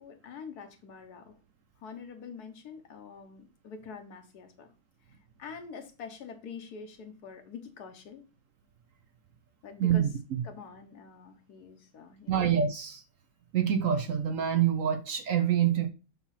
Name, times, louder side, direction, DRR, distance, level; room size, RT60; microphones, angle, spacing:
voice 1, 0.0-1.4 1.8-4.7 5.1-8.2 9.6-10.1 10.4-12.4, left 5 dB, 70° left, 1.5 m, -45 dB
voice 2, 9.8-10.4 12.3-13.0 13.5-15.9, right 9 dB, 60° right, 0.9 m, -26 dB
7.3 x 3.0 x 5.7 m
omnidirectional pair, 1.8 m